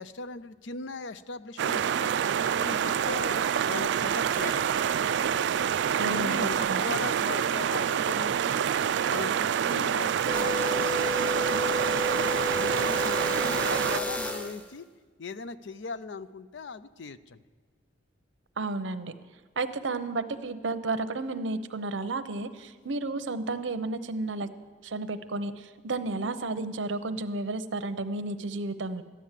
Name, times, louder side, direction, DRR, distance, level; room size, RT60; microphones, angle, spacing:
voice 1, 0.0-2.1 2.6-4.7 6.0-8.6 9.1-11.1 12.6-14.9 15.2-17.4, left 4 dB, 75° left, 14 dB, 0.5 m, -39 dB
sound 1, 1.6-14.0, right 8 dB, 65° right, 0.3 m, -27 dB
voice 2, 5.9-6.4 6.7-6.8 18.6-19.1 19.6-24.5 24.8-29.0, right 3 dB, 85° right, 11 dB, 0.8 m, -32 dB
sound 2, 10.3-14.7, left 2 dB, 5° left, 0.8 m, -32 dB
14.0 x 10.0 x 7.4 m, 1.4 s
head